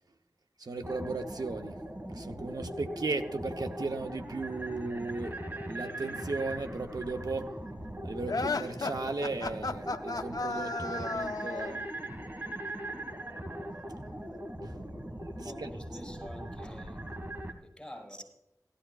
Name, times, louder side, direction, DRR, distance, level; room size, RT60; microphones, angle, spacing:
voice 1, 0.6-1.8 2.1-5.4 5.7-7.5 8.0-11.9 14.6-14.8 15.4-15.7, right 3 dB, 85° right, 0.9 m, -36 dB
sound 1, 0.8-17.5, right 1 dB, 30° right, 1.8 m, -40 dB
sound 2, 8.3-11.8, left 3 dB, 70° left, 0.6 m, -34 dB
voice 2, 15.3-17.0 17.6-18.2, equal, 10° left, 5.2 m, -48 dB
17.5 x 13.0 x 2.4 m
wide cardioid pair, 45°, 7 cm